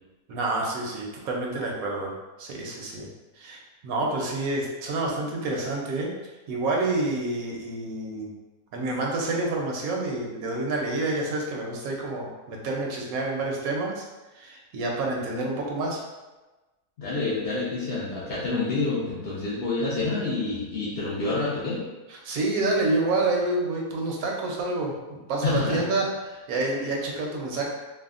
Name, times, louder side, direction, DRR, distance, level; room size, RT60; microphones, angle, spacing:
voice 1, 0.3-3.1 3.4-6.1 6.5-8.3 8.7-14.0 14.3-16.0 22.2-26.1 26.5-27.6, right 2 dB, 80° right, -1 dB, 1.0 m, -28 dB
voice 2, 17.0-21.8 25.4-25.8, left 3 dB, 55° left, -7 dB, 0.7 m, -28 dB
3.3 x 2.0 x 2.4 m, 1.1 s
omnidirectional pair, 1.5 m